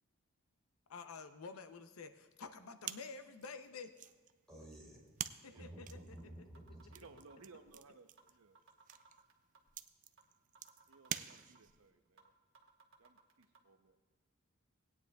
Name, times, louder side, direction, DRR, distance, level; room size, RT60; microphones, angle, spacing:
voice 1, 0.9-3.9 5.4-6.0, left 4 dB, 85° left, 9 dB, 0.6 m, -49 dB
sound 1, 2.8-11.9, right 10 dB, 40° right, 0.4 m, -49 dB
voice 2, 4.5-5.2 5.5-7.1, right 1 dB, 5° left, -4 dB, 3.5 m, -53 dB
sound 2, 6.2-6.3 6.5-7.7 8.2-8.3 8.5-9.7 10.2-10.3 10.5-11.7 12.2-12.3 12.5-13.6, right 4 dB, 70° right, 1.1 m, -63 dB
voice 3, 6.9-8.6 10.9-12.3 13.0-14.0, right 4 dB, 85° right, 7 dB, 0.7 m, -61 dB
18.5 x 9.4 x 2.3 m, 1.3 s
head